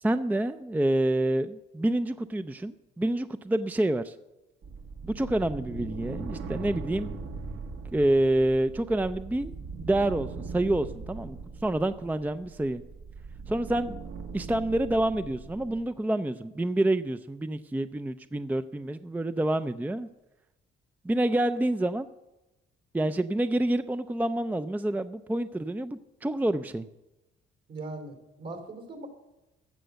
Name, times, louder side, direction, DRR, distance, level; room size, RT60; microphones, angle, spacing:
voice 1, 0.0-4.1 5.0-7.2 7.9-9.5 9.8-11.4 11.6-12.8 13.5-14.0 14.3-20.1 21.0-22.1 22.9-26.9, right 1 dB, 10° right, 11 dB, 0.5 m, -27 dB
sound 1, 4.6-15.9, right 4 dB, 75° right, 1.9 m, -40 dB
voice 2, 27.7-29.1, right 2 dB, 60° right, 6 dB, 3.1 m, -40 dB
14.5 x 6.8 x 7.9 m, 1.0 s
cardioid pair, 90°, 20 cm